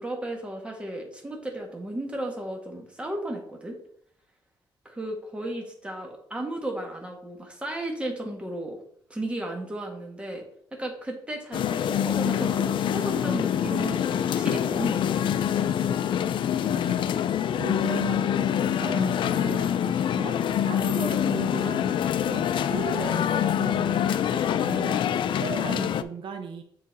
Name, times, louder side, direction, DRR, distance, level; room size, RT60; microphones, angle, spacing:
voice 1, 0.0-3.8 4.8-8.8 9.1-10.4 10.8-15.3, right 1 dB, 10° right, 1 dB, 1.5 m, -34 dB
sound 1, 11.5-26.0, left 9 dB, 65° left, 0.4 m, -25 dB
voice 2, 16.7-17.3 17.6-26.6, right 5 dB, 65° right, 5 dB, 0.8 m, -37 dB
7.4 x 4.0 x 4.1 m, 0.65 s
cardioid pair, 125°, 9 cm